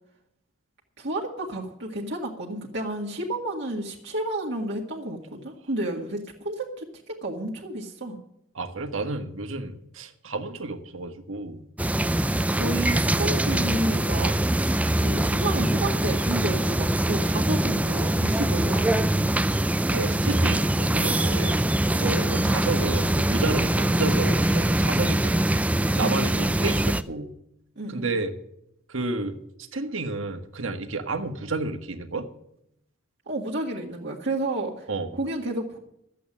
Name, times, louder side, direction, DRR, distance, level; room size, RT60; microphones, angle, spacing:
voice 1, 1.0-8.2 12.5-14.3 15.0-19.0 22.0-22.6 26.0-26.5 27.8-28.1 33.3-34.9 35.1-35.8, right 1 dB, 55° right, -2 dB, 1.9 m, -31 dB
voice 2, 8.5-11.6 14.2-14.4 19.9-25.5 25.9-27.3 27.9-28.4 28.9-29.4 29.7-32.3 34.9-35.1, right 3 dB, 80° right, 7 dB, 1.5 m, -31 dB
sound 1, 11.8-27.0, right 1 dB, 5° right, 0.4 m, -23 dB
13.0 x 8.4 x 7.4 m, 0.78 s
head